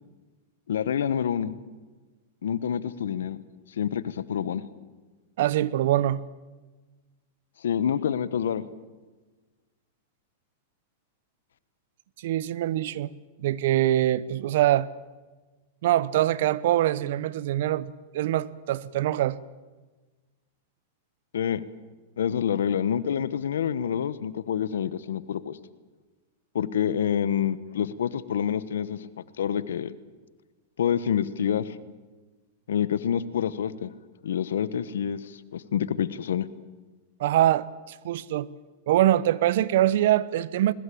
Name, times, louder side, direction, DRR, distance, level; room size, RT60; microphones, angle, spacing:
voice 1, 0.7-1.5 2.4-3.4 3.8-4.6 7.6-8.6 21.3-21.6 22.2-25.6 26.5-29.1 29.4-29.9 30.8-31.7 32.7-33.9 34.2-36.5, left 8 dB, 85° left, 16 dB, 1.2 m, -27 dB
voice 2, 5.4-6.2 12.2-13.1 13.4-14.9 15.8-19.4 37.2-38.5 38.9-40.7, right 13 dB, 70° right, 20 dB, 0.9 m, -24 dB
21.0 x 21.0 x 8.6 m, 1.3 s
hypercardioid pair, 125°, 0 cm